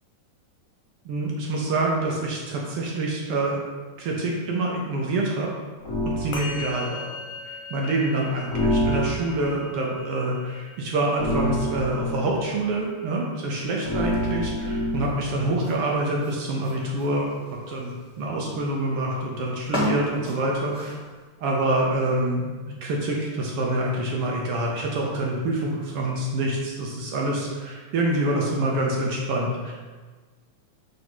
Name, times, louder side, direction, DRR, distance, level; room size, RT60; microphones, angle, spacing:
voice 1, 1.0-3.6 4.0-5.5 6.0-7.1 7.4-20.9 21.4-22.5 22.8-29.7, right 2 dB, 70° right, -2 dB, 1.4 m, -26 dB
sound 1, 5.8-6.3 8.5-9.5 11.2-12.3 13.8-15.2, equal, 20° left, 0.5 m, -26 dB
Musical instrument, 6.3-15.9, left 4 dB, 65° left, 1.6 m, -42 dB
sound 2, 13.6-21.2, equal, 5° right, 1.2 m, -36 dB
5.5 x 4.0 x 6.1 m, 1.4 s
omnidirectional pair, 3.6 m